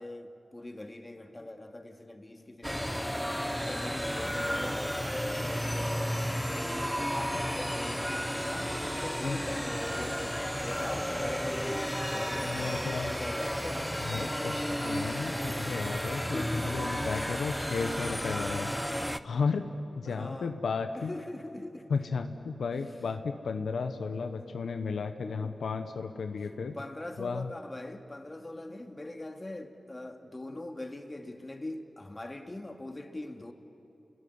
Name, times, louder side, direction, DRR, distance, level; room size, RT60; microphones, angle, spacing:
voice 1, 0.0-6.3 7.1-15.7 16.2-16.7 20.1-20.6 21.0-21.9 24.4-24.5 25.2-25.6 26.4-33.5, left 1 dB, 30° left, 2.3 m, -42 dB
sound 1, 2.6-19.2, equal, ahead, 1.0 m, -33 dB
voice 2, 12.5-13.1 14.0-18.7 19.2-19.7 20.0-21.1 21.9-26.8 27.2-27.5, left 5 dB, 85° left, 1.0 m, -34 dB
28.5 x 20.5 x 9.6 m
cardioid pair, 45°, 0 cm